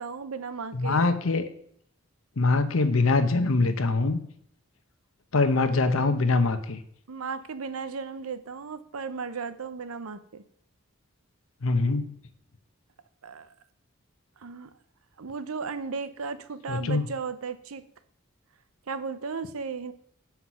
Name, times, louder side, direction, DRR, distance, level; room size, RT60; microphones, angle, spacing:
voice 1, 0.0-1.1 7.1-10.4 13.2-13.5 14.4-14.7 15.2-17.8 18.9-19.9, right 5 dB, 90° right, 13 dB, 0.7 m, -35 dB
voice 2, 0.7-1.4 2.4-4.2 5.3-6.8 11.6-12.1 16.7-17.1, left 3 dB, 75° left, 9 dB, 0.8 m, -23 dB
7.9 x 5.8 x 5.8 m, 0.65 s
head